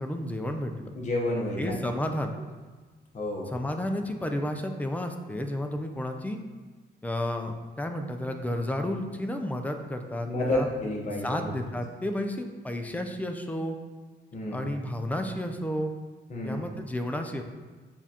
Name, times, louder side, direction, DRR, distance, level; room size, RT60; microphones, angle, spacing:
voice 1, 0.0-0.9 1.6-2.3 3.5-6.4 7.0-10.7 11.2-13.8 14.5-15.9 16.4-17.4, left 1 dB, 10° left, 5 dB, 0.3 m, -31 dB
voice 2, 0.9-1.8 3.1-3.5 10.3-11.5 14.3-14.7 16.3-16.6, left 1 dB, 40° left, -1 dB, 0.8 m, -30 dB
7.0 x 2.4 x 2.8 m, 1.3 s
cardioid pair, 130°, 18 cm